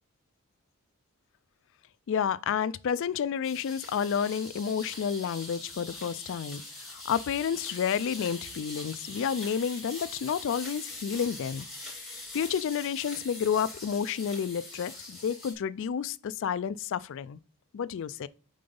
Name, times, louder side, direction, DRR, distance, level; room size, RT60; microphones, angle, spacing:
voice 1, 2.1-11.7 12.3-17.4 17.7-18.3, left 7 dB, 55° left, 0.3 m, -30 dB
sound 1, 3.4-15.5, left 2 dB, ahead, 2.4 m, -43 dB
5.2 x 3.9 x 5.2 m
head